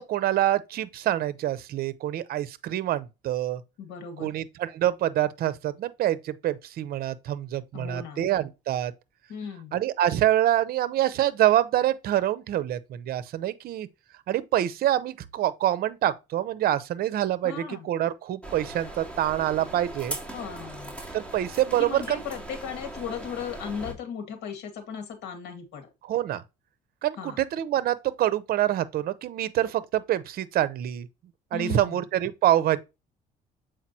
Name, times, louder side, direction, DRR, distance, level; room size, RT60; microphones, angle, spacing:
voice 1, 0.0-3.6 4.2-8.9 9.7-13.9 14.3-20.2 21.1-22.2 26.0-26.4 27.0-31.1 31.5-32.8, right 12 dB, 65° right, 0.7 m, -26 dB
voice 2, 3.8-4.4 7.7-8.3 9.3-9.8 17.4-17.9 20.3-21.0 21.8-25.9 27.2-27.4 31.5-32.0, left 7 dB, 80° left, 2.0 m, -36 dB
sound 1, 18.4-23.9, right 1 dB, 5° left, 2.6 m, -39 dB
7.4 x 5.0 x 2.8 m
cardioid pair, 110°, 17 cm